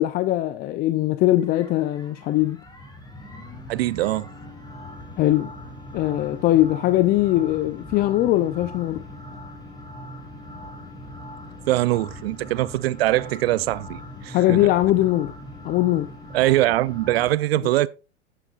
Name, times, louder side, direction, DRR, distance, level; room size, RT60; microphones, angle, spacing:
voice 1, 0.0-2.6 5.2-5.5 5.9-9.0 14.3-15.3 15.6-16.1, left 15 dB, 25° left, 0.5 m, -21 dB
sound 1, 1.4-17.3, left 1 dB, 10° left, 2.8 m, -40 dB
voice 2, 3.7-4.3 11.7-14.7 16.3-17.9, right 16 dB, 60° right, 0.5 m, -22 dB
11.5 x 9.2 x 2.4 m
hypercardioid pair, 110°, 35 cm